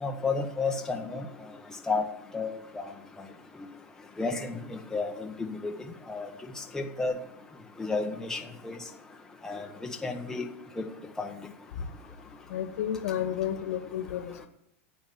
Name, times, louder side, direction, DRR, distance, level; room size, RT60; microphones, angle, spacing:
voice 1, 0.0-1.2 1.9-2.0 2.3-2.9 4.2-4.6 4.9-5.1 5.6-5.7 6.1-6.3 6.7-7.1 7.8-8.4 8.6-8.8 9.4-9.7 10.0-10.4 11.2-11.3, left 4 dB, 5° left, 1 dB, 1.2 m, -30 dB
voice 2, 12.5-14.5, left 10 dB, 75° left, 7 dB, 1.9 m, -31 dB
11.5 x 8.4 x 7.8 m, 0.80 s
supercardioid pair, 140°, 8 cm